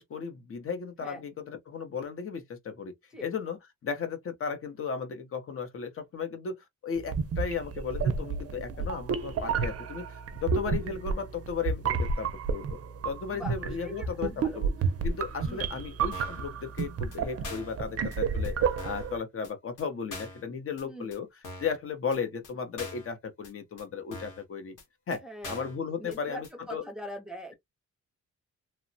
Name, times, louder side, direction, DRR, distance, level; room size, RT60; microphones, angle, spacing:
voice 1, 0.0-2.9 3.2-3.6 3.8-6.6 6.8-12.8 13.0-14.7 15.0-21.3 21.6-24.8 25.1-26.8, left 6 dB, 45° left, 0.6 m, -35 dB
sound 1, 7.0-19.2, right 5 dB, 50° right, 0.5 m, -31 dB
voice 2, 13.3-14.6 15.5-15.8 20.8-21.1 25.2-25.7 26.0-27.5, equal, ahead, 0.6 m, -42 dB
sound 2, 16.1-16.4 16.8-16.9 17.1-17.2 17.4-17.8 18.1-18.2 18.4-18.5 18.8-19.1 19.4-19.5 19.8-19.9 20.1-20.4 20.8-20.9 21.1-21.2 21.4-21.8 22.1-22.2 22.4-22.5 22.8-23.1 23.4-23.5 23.8-23.9 24.1-24.4 24.8-24.9 25.1-25.2 25.4-25.8 26.1-26.2 26.4-26.5, left 2 dB, 85° left, 1.2 m, -43 dB
2.9 x 2.1 x 2.6 m
wide cardioid pair, 160°, 30 cm